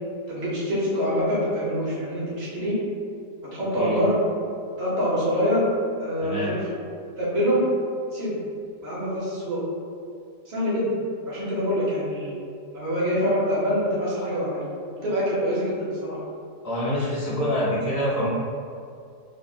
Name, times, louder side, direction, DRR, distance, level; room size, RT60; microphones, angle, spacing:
voice 1, 0.3-2.8 3.5-4.2 4.8-5.6 6.0-6.7 7.2-7.6 8.1-8.4 8.8-9.6 10.5-10.9 11.3-12.3 12.7-14.6 14.9-16.2, equal, 45° right, -8 dB, 1.0 m, -25 dB
voice 2, 6.2-6.6 16.6-18.3, equal, 50° left, -9 dB, 0.7 m, -26 dB
3.6 x 2.1 x 4.0 m, 2.4 s
omnidirectional pair, 1.9 m